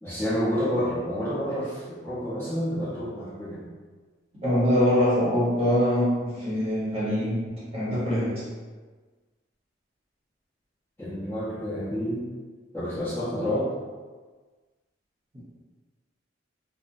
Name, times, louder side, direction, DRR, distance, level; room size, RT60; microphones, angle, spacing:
voice 1, 0.0-3.6 11.0-12.3 12.7-13.7, equal, 15° left, -12 dB, 0.7 m, -29 dB
voice 2, 4.4-8.4 15.3-15.4, equal, 30° right, -9 dB, 0.9 m, -24 dB
2.7 x 2.0 x 2.6 m, 1.4 s
head